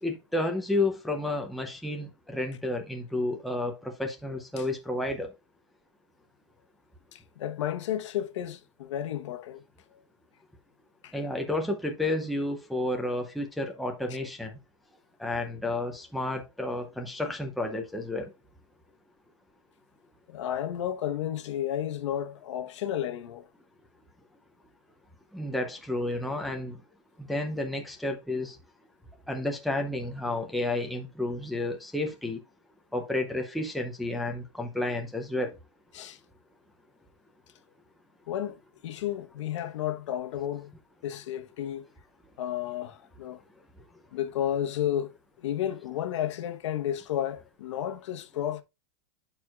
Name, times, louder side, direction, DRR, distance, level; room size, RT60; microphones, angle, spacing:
voice 1, 0.0-5.3 11.1-14.5 15.2-18.3 25.3-26.8 27.3-28.6 29.3-32.4 32.9-35.5, left 2 dB, ahead, 0.6 m, -31 dB
voice 2, 7.1-9.6 9.9-10.0 11.0-11.1 20.3-23.4 35.9-36.2 38.3-38.6 38.8-40.7 41.0-41.8 42.4-43.4 44.1-45.1 45.4-48.6, left 11 dB, 65° left, 1.1 m, -32 dB
10.5 x 4.6 x 2.3 m
supercardioid pair, 170°, 16 cm